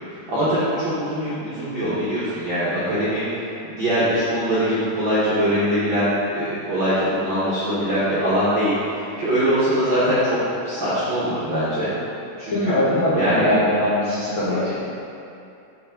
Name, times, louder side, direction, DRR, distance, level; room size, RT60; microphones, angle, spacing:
voice 1, 0.1-10.4 10.6-11.9 12.4-12.8 13.1-13.4 14.5-14.8, equal, 60° right, -12 dB, 1.2 m, -22 dB
voice 2, 12.5-14.8, left 1 dB, 70° left, -10 dB, 1.2 m, -21 dB
7.5 x 5.3 x 3.7 m, 2.7 s
omnidirectional pair, 4.1 m